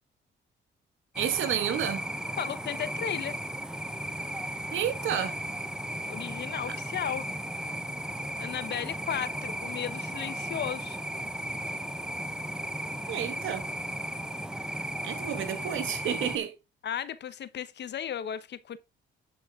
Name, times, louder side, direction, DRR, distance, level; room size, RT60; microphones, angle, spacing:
sound 1, 1.1-16.4, right 1 dB, 5° right, 1.0 m, -35 dB
voice 1, 1.2-2.0 4.7-5.4 6.7-6.8 13.1-13.7 15.0-16.5, right 9 dB, 80° right, 1.9 m, -30 dB
voice 2, 2.4-3.4 6.1-7.3 8.4-11.0 16.8-18.8, left 9 dB, 60° left, 1.0 m, -35 dB
10.5 x 6.3 x 3.6 m
cardioid pair, 90°, 20 cm